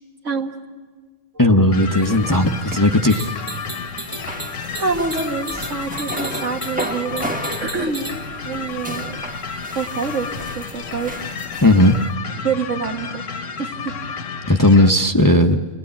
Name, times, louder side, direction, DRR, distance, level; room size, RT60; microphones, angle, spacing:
voice 1, 1.4-3.4 11.6-12.0 14.5-15.6, left 1 dB, 20° left, 5 dB, 0.7 m, -15 dB
sound 1, 1.7-14.9, left 5 dB, 90° left, 1.3 m, -32 dB
sound 2, 1.9-12.2, equal, 5° right, 1.0 m, -34 dB
sound 3, 3.1-8.3, right 2 dB, 35° right, 1.9 m, -34 dB
voice 2, 4.7-7.3 7.6-8.1 8.4-9.2 9.7-11.1 12.4-13.2 13.6-14.0, right 4 dB, 80° right, 3 dB, 2.0 m, -26 dB
29.0 x 19.5 x 8.6 m, 1.4 s
omnidirectional pair, 1.3 m